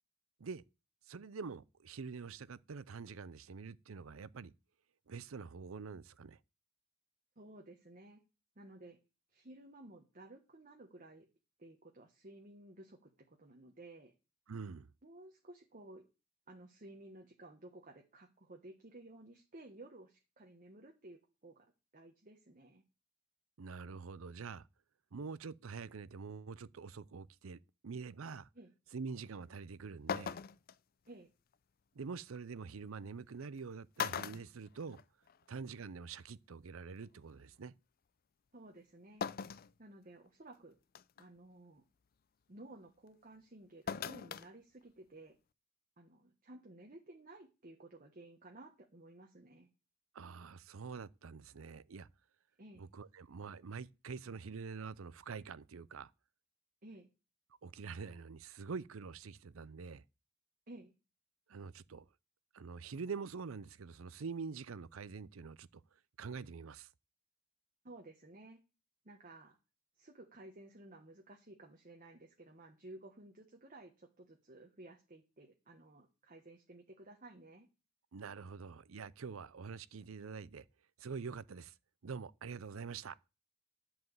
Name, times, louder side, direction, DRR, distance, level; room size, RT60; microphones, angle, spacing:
voice 1, 1.1-4.5 5.1-6.4 14.5-14.9 23.6-24.7 25.1-28.5 28.9-30.4 31.9-35.0 35.5-37.7 50.1-52.1 52.8-56.1 57.6-60.0 61.5-62.0 62.5-65.8 66.2-66.9 78.1-80.6 81.0-81.7 82.0-83.2, right 5 dB, 80° right, 0.6 m, -46 dB
voice 2, 7.4-8.2 8.5-9.0 9.3-11.3 11.6-14.1 15.0-16.1 16.5-22.8 28.5-28.7 31.1-31.3 38.5-39.3 39.8-40.8 41.2-41.8 42.5-45.3 46.0-49.7 52.6-52.8 56.8-57.1 60.7-60.9 67.8-68.6 69.0-69.6 70.0-77.7, right 2 dB, 40° right, 1.3 m, -55 dB
sound 1, 29.6-29.7 30.1-30.7 32.3-32.4 33.4-33.6 34.0-35.4 35.7-35.8 37.0-37.1 39.2-39.7 40.3-40.4 40.9-41.2 43.9-44.5 44.8-44.9, left 7 dB, 45° left, 0.4 m, -39 dB
11.0 x 4.8 x 7.9 m
head